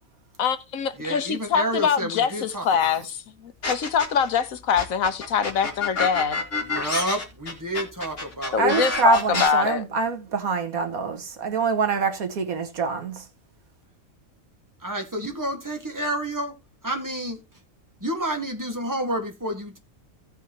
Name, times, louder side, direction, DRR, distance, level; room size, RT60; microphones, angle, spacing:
voice 1, 0.4-6.4 8.5-9.8, left 7 dB, 75° left, 1.3 m, -24 dB
voice 2, 1.0-3.0 6.6-8.6 14.8-16.5 16.8-17.4 18.0-19.8, right 1 dB, 15° right, 1.6 m, -30 dB
sound 1, 3.6-4.3 4.8-9.5, left 3 dB, 60° left, 2.4 m, -28 dB
voice 3, 8.6-13.2, right 4 dB, 90° right, 1.8 m, -25 dB
16.5 x 5.6 x 2.9 m
omnidirectional pair, 1.4 m